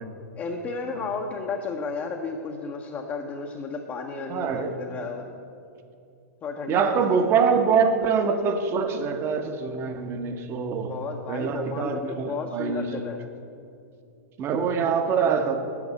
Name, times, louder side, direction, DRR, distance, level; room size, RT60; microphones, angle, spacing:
voice 1, 0.3-5.3 6.4-7.2 10.9-13.2, left 4 dB, 20° left, 1 dB, 0.8 m, -33 dB
voice 2, 4.3-4.8 6.7-11.0 11.3-13.0 14.4-15.6, right 6 dB, 25° right, 7 dB, 0.9 m, -24 dB
8.2 x 7.1 x 8.5 m, 2.4 s
figure-of-eight pair, 100°, 9 cm